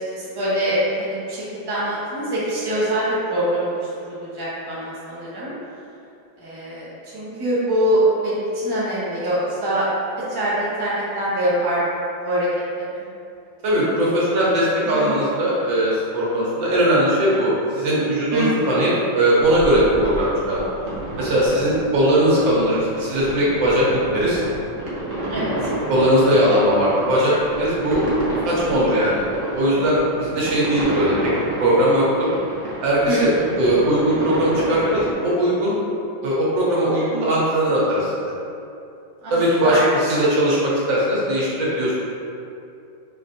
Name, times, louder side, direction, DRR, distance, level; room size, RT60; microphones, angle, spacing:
voice 1, 0.1-3.7 4.0-5.5 6.4-6.9 7.1-9.9 10.3-11.8 12.2-12.5 12.8-13.0 15.0-15.1 18.3-18.8 25.3-25.5 33.1-33.5 39.2-39.3 39.6-40.2, right 1 dB, 20° right, -9 dB, 0.7 m, -24 dB
voice 2, 13.6-20.7 21.2-23.9 24.1-24.4 25.9-28.1 28.4-29.2 29.5-31.3 31.6-32.0 32.8-33.3 33.6-35.7 36.2-38.3 39.3-42.0, equal, 85° right, -6 dB, 1.7 m, -19 dB
sound 1, 19.4-35.1, right 1 dB, 55° right, 0.9 m, -29 dB
5.0 x 2.5 x 2.6 m, 2.6 s
omnidirectional pair, 2.0 m